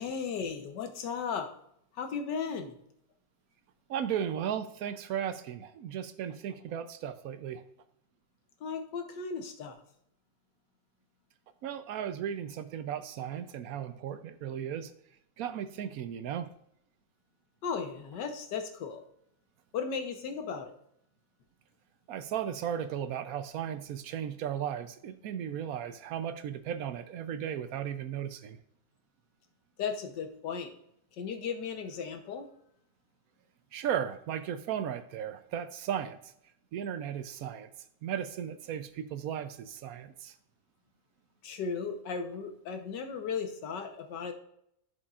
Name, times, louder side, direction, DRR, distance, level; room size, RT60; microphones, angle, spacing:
voice 1, 0.0-1.5 2.0-2.7 8.6-9.8 17.6-19.0 19.7-20.7 29.8-30.7 31.2-32.5 41.4-44.3, left 6 dB, 85° left, 6 dB, 1.6 m, -36 dB
voice 2, 3.9-7.6 11.6-14.9 15.4-16.5 22.1-28.6 33.7-36.2 36.7-37.7 38.0-40.3, right 9 dB, 70° right, 11 dB, 0.9 m, -35 dB
11.0 x 6.9 x 2.4 m, 0.73 s
omnidirectional pair, 1.8 m